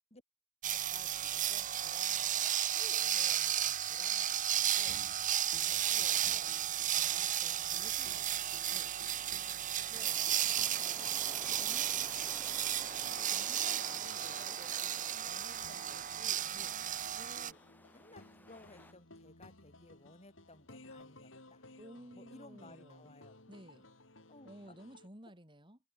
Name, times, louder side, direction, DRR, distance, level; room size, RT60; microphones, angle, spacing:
sound 1, 0.6-17.5, right 11 dB, 40° right, 0.9 m, -34 dB
voice 1, 0.7-5.0 5.7-6.5 7.0-8.7 9.8-10.2 10.8-11.2 11.5-12.1 13.3-16.5 17.2-17.6 17.9-21.6 22.1-23.4 24.3-24.8, left 2 dB, 35° left, 7.6 m, -57 dB
sound 2, 5.5-25.1, left 2 dB, 70° left, 5.5 m, -58 dB
sound 3, 9.9-18.9, left 1 dB, 10° left, 3.1 m, -54 dB
voice 2, 21.8-23.1 23.5-23.9 24.4-25.8, right 1 dB, 25° right, 7.0 m, -54 dB
head